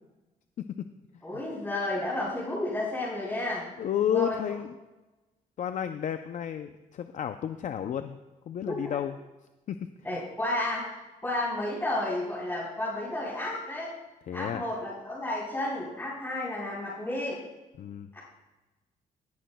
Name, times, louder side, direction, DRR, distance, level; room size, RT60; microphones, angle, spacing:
voice 1, 0.6-0.9 3.8-4.7 5.6-8.2 8.5-9.2 9.7-9.8 10.1-10.2 14.3-14.6 17.8-18.1, left 9 dB, 55° left, 9 dB, 0.5 m, -31 dB
voice 2, 1.2-3.7 4.1-4.4 8.6-8.9 10.0-13.9 14.3-17.4, left 1 dB, 15° left, -10 dB, 3.9 m, -32 dB
19.5 x 10.0 x 2.2 m, 1.1 s
cardioid pair, 130°, 15 cm